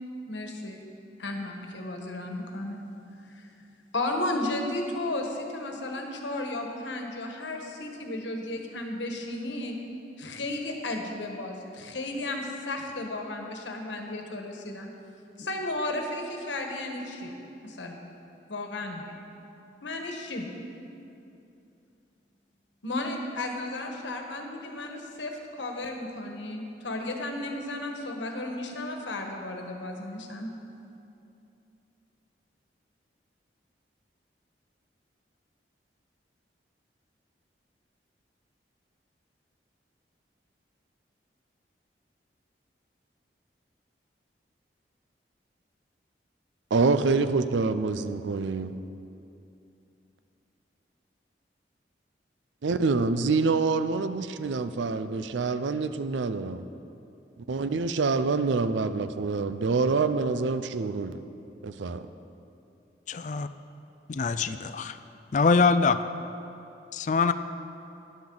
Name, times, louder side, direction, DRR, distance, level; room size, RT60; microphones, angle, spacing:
voice 1, 0.3-0.8 1.2-2.8 3.2-3.5 3.9-9.8 10.2-14.9 15.4-17.3 17.6-18.1 18.5-19.2 19.8-20.5 22.8-30.5, left 2 dB, 85° left, 2 dB, 1.3 m, -34 dB
voice 2, 46.7-48.8 52.6-56.7 57.5-61.2 61.6-62.1, right 4 dB, 85° right, 11 dB, 0.5 m, -26 dB
voice 3, 63.1-63.5 64.1-65.0 65.3-66.0 66.9-67.3, left 4 dB, 40° left, 11 dB, 0.4 m, -23 dB
13.5 x 10.5 x 3.9 m, 2.7 s
head